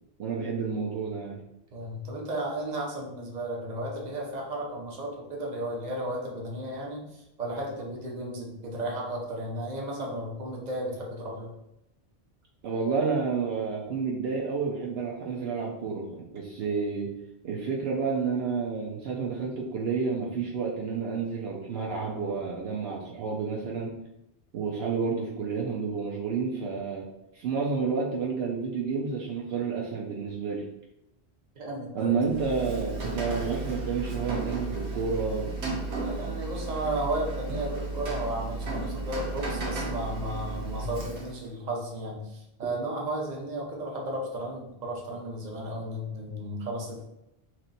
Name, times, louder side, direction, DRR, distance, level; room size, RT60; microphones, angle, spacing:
voice 1, 0.2-1.4 12.6-17.1 17.4-23.9 24.5-27.1 27.3-30.7 31.9-35.5, right 5 dB, 70° right, -2 dB, 0.8 m, -30 dB
voice 2, 1.7-11.5 31.6-32.2 35.9-47.0, right 1 dB, 40° right, -1 dB, 0.9 m, -34 dB
Rain, 32.2-41.5, right 3 dB, 90° right, 1.3 m, -34 dB
3.2 x 2.9 x 4.0 m, 0.85 s
omnidirectional pair, 1.1 m